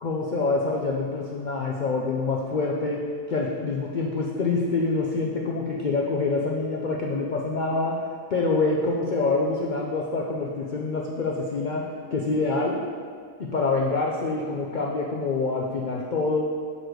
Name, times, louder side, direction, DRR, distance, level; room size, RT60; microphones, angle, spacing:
voice 1, 0.0-3.0 3.3-8.0 8.3-11.8 12.1-12.8 13.4-16.4, left 3 dB, 80° left, -2 dB, 0.4 m, -26 dB
6.6 x 4.1 x 4.6 m, 2.1 s
omnidirectional pair, 1.5 m